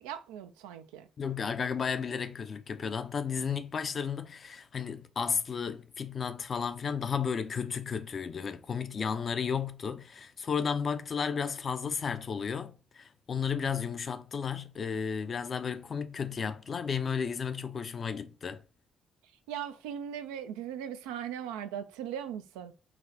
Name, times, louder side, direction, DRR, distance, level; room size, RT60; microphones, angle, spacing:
voice 1, 0.0-1.1 19.5-22.7, right 9 dB, 90° right, 0.3 m, -39 dB
voice 2, 1.2-18.6, left 6 dB, 50° left, 0.4 m, -33 dB
4.0 x 2.1 x 2.6 m
hypercardioid pair, 55°, 0 cm